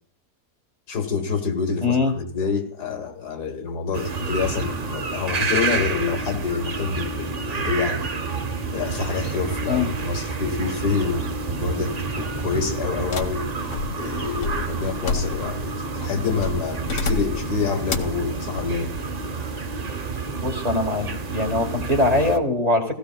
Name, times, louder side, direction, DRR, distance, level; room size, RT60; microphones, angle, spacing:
voice 1, 0.9-8.0 8.7-13.5 14.0-18.9, left 5 dB, 75° left, 5 dB, 2.1 m, -27 dB
voice 2, 1.8-2.1 9.7-9.9 20.3-21.1 21.3-22.9, left 2 dB, 25° right, 2 dB, 1.6 m, -22 dB
sound 1, 3.9-22.4, right 4 dB, 65° right, 0.4 m, -29 dB
sound 2, 13.1-15.7 16.4-17.5 17.9-18.2, left 4 dB, 60° left, 1.3 m, -29 dB
16.5 x 16.5 x 2.3 m, 0.62 s
omnidirectional pair, 1.7 m